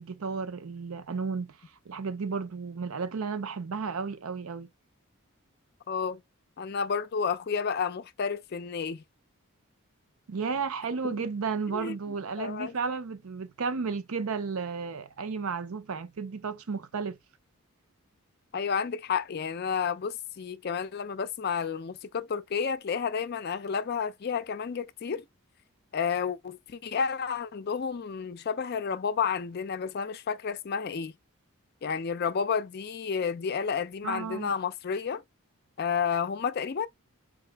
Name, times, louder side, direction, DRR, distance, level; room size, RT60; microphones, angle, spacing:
voice 1, 0.0-1.6 1.9-4.7 10.3-17.2 34.0-34.5, right 5 dB, 75° right, 0.6 m, -33 dB
voice 2, 5.9-6.2 6.6-9.0 11.1-11.3 11.7-12.0 12.4-12.8 18.5-25.3 25.9-31.1 31.8-35.2 35.8-36.9, left 6 dB, 45° left, 0.4 m, -31 dB
3.9 x 2.7 x 3.4 m
head